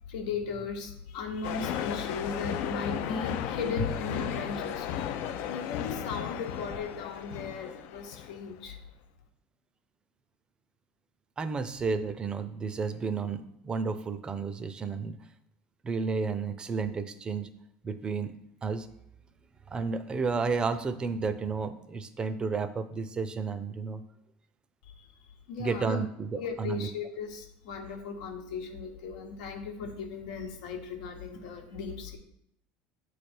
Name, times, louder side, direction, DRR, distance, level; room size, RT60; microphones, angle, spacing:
voice 1, 0.1-5.0 5.5-8.8 24.8-26.0 26.3-32.2, left 5 dB, 85° left, 3 dB, 1.1 m, -37 dB
sound 1, 1.4-8.5, left 9 dB, 65° left, 0.5 m, -35 dB
voice 2, 11.4-15.2 15.8-17.5 17.8-18.3 18.6-18.9 19.7-24.0 25.6-26.9, right 4 dB, 20° right, 11 dB, 0.5 m, -32 dB
7.8 x 3.3 x 4.3 m, 0.76 s
supercardioid pair, 130°, 4 cm